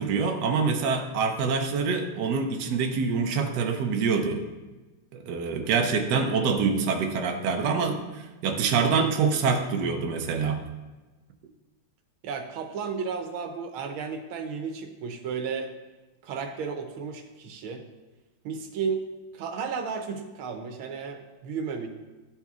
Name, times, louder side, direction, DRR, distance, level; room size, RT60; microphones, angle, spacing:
voice 1, 0.0-4.4 5.1-10.6, right 5 dB, 65° right, 4 dB, 1.1 m, -25 dB
voice 2, 12.2-15.7 16.2-17.8 18.4-19.1 19.3-21.9, right 5 dB, 90° right, 4 dB, 1.6 m, -33 dB
12.5 x 4.3 x 2.4 m, 1.2 s
omnidirectional pair, 2.2 m